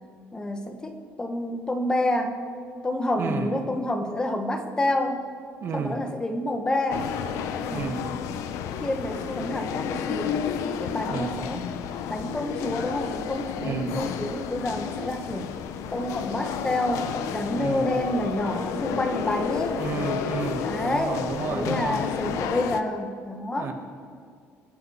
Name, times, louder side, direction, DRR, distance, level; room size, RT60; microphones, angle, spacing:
voice 1, 0.3-2.4 2.8-5.2 5.7-7.1 7.5-7.9 8.8-11.6 12.1-15.5 15.9-19.8 20.6-21.2 21.5-23.7, left 1 dB, 15° left, 5 dB, 1.7 m, -28 dB
voice 2, 3.2-3.5 5.6-6.0 7.7-8.1 11.1-11.5 13.6-14.0 17.5-18.0 19.8-22.0 23.5-23.7, right 5 dB, 50° right, 3 dB, 1.8 m, -31 dB
sound 1, 6.9-22.8, left 8 dB, 85° left, 0.8 m, -31 dB
28.0 x 9.4 x 4.8 m, 2.1 s
cardioid pair, 130°, 5 cm